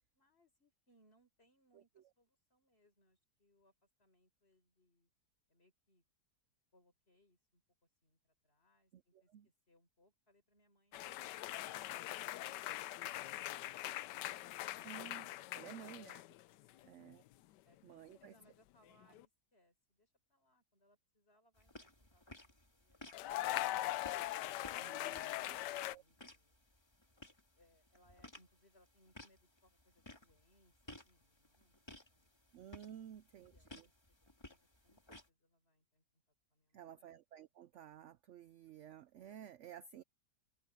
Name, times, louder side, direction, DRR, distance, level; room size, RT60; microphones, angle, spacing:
voice 1, 0.1-5.1 5.5-6.0 6.7-11.0 16.7-17.0 17.6-17.8 18.0-24.5 25.1-26.5 27.5-32.5 33.1-33.9 34.5-35.0 35.3-37.2, left 1 dB, 35° left, 5.7 m, -74 dB
voice 2, 8.9-9.5 14.8-15.3 15.5-16.2 16.9-17.2 17.8-18.3 24.8-25.6 25.9-26.0 32.5-33.9 36.7-40.0, right 10 dB, 75° right, 0.6 m, -54 dB
sound 1, 10.9-16.4 16.7-17.1 19.0-19.3 23.1-26.0, left 15 dB, 85° left, 1.2 m, -41 dB
sound 2, 21.6-35.3, left 1 dB, 15° left, 2.3 m, -58 dB
open air
omnidirectional pair, 1.8 m